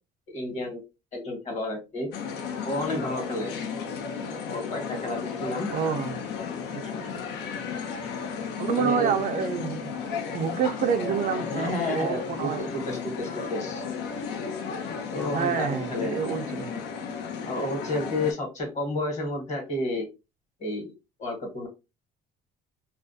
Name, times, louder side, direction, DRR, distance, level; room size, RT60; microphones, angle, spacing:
voice 1, 0.3-0.8 1.1-2.1 2.6-3.5 4.4-5.7 8.7-9.1 11.5-13.8 15.1-16.2 17.5-20.1 20.6-20.9 21.2-21.7, left 1 dB, 45° left, 1.2 m, -31 dB
sound 1, 2.1-18.3, left 6 dB, 85° left, 0.6 m, -34 dB
voice 2, 5.7-6.2 6.7-7.1 8.6-12.6 15.3-16.8, right 6 dB, 55° right, 0.4 m, -28 dB
2.4 x 2.1 x 2.5 m
cardioid pair, 110°, 17 cm